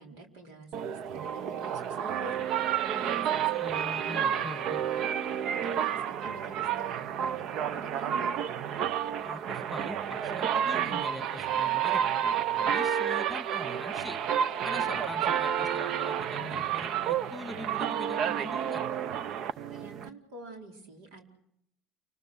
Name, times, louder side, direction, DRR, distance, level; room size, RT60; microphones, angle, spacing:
voice 1, 0.0-8.4 19.7-21.2, right 2 dB, 80° right, 2 dB, 4.5 m, -47 dB
sound 1, 0.7-20.1, right 9 dB, 60° right, 0.8 m, -30 dB
voice 2, 3.2-4.8 9.2-14.2 14.6-18.8, left 1 dB, 5° left, 7 dB, 2.0 m, -43 dB
29.0 x 20.5 x 6.3 m, 0.77 s
supercardioid pair, 90°, 0 cm